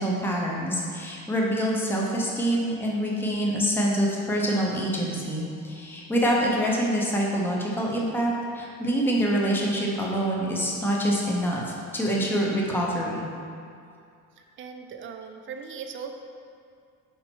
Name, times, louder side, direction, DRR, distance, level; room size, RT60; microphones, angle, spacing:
voice 1, 0.0-13.2, equal, 5° left, -3 dB, 0.7 m, -26 dB
voice 2, 14.4-16.1, right 6 dB, 40° right, 5 dB, 0.5 m, -39 dB
5.5 x 4.4 x 4.4 m, 2.4 s
cardioid pair, 145°, 33 cm